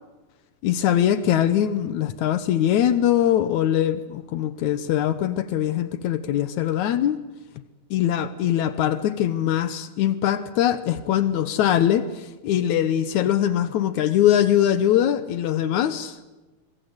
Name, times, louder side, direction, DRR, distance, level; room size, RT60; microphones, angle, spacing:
voice 1, 0.6-7.2 7.9-16.2, left 11 dB, 75° left, 13 dB, 2.4 m, -22 dB
26.0 x 23.5 x 8.2 m, 1.1 s
omnidirectional pair, 3.4 m